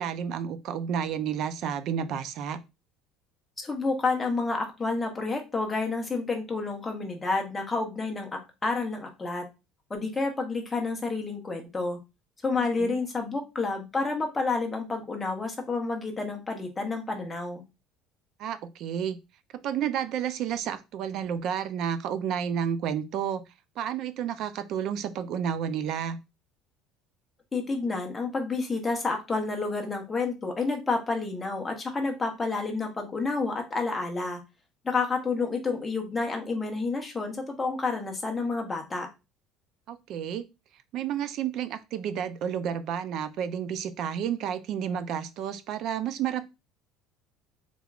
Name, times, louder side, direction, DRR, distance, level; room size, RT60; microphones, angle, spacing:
voice 1, 0.0-2.6 12.6-13.0 18.4-19.2 19.6-23.4 23.8-26.2 39.9-40.5 40.9-46.4, right 8 dB, 45° right, 11 dB, 0.4 m, -31 dB
voice 2, 3.6-8.3 8.6-9.4 9.9-12.0 12.4-17.6 27.5-34.4 34.8-39.1, left 3 dB, 10° left, 2 dB, 0.7 m, -29 dB
3.5 x 3.4 x 2.3 m, 0.26 s
cardioid pair, 175°, 0 cm